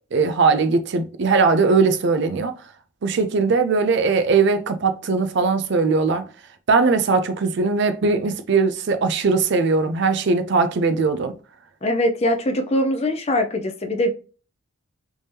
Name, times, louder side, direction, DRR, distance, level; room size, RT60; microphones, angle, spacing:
voice 1, 0.1-2.5 3.0-6.2 6.7-11.3, right 4 dB, 55° right, 0.4 m, -20 dB
voice 2, 11.8-14.1, left 1 dB, 30° left, 0.5 m, -22 dB
3.5 x 2.7 x 3.3 m
head